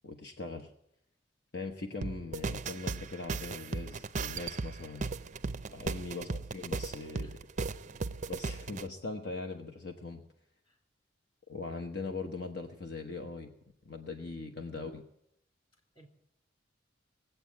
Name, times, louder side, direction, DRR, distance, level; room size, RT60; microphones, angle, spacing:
voice 1, 0.0-0.7 1.5-5.1 5.7-7.4 8.3-10.2 11.5-13.5 13.8-15.0, left 3 dB, 60° left, 3 dB, 1.0 m, -40 dB
sound 1, 2.0-8.8, right 4 dB, 40° right, 0.5 m, -37 dB
voice 2, 5.5-5.8 7.2-7.6 10.6-10.8 15.7-16.1, right 1 dB, 30° left, 2 dB, 3.4 m, -62 dB
19.5 x 8.2 x 8.5 m, 0.80 s
head